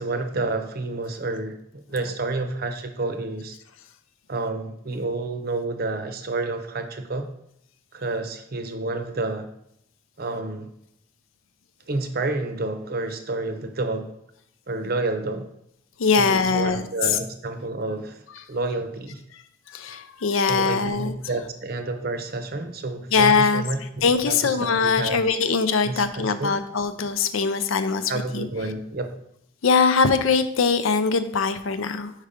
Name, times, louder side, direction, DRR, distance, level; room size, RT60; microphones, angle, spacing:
voice 1, 0.0-1.6 1.9-3.5 4.3-7.3 7.9-9.5 10.2-10.7 11.9-14.1 14.7-15.5 16.2-19.2 20.5-25.2 25.8-26.5 28.1-29.1, right 2 dB, 50° right, 8 dB, 0.7 m, -29 dB
voice 2, 16.0-16.8 19.7-21.1 23.1-23.6 24.0-28.5 29.6-32.1, left 5 dB, 75° left, 11 dB, 0.5 m, -21 dB
5.6 x 4.7 x 5.0 m, 0.74 s
head